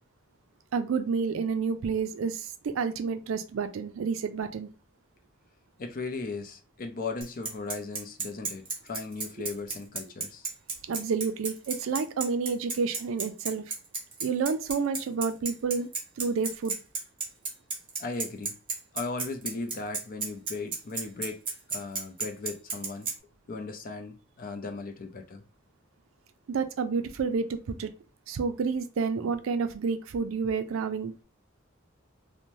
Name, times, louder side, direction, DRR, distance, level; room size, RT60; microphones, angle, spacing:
voice 1, 0.7-4.7 10.9-13.7 14.2-15.9 16.2-16.8 26.5-27.9 28.3-31.1, right 5 dB, 75° right, 0.4 m, -29 dB
voice 2, 5.8-10.5 18.0-18.6 18.9-21.4 21.7-23.1 23.5-25.4, left 3 dB, 45° left, 0.5 m, -37 dB
Bicycle, 7.2-23.1, right 4 dB, 25° right, 0.8 m, -32 dB
2.6 x 2.1 x 3.0 m
head